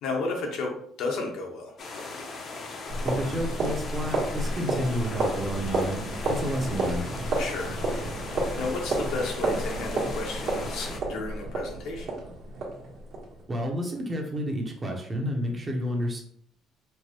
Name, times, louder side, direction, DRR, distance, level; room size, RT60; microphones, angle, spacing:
voice 1, 0.0-1.7 7.4-7.8 8.6-12.2, left 3 dB, 70° left, 1 dB, 0.9 m, -32 dB
sound 1, 1.8-11.0, left 3 dB, 45° left, 0.6 m, -39 dB
sound 2, 2.9-13.4, right 2 dB, 60° right, 1.3 m, -31 dB
voice 2, 3.0-6.0 6.3-7.1 13.5-16.2, equal, 25° right, 1 dB, 0.7 m, -30 dB
4.4 x 2.1 x 3.0 m, 0.62 s
cardioid pair, 135°, 0 cm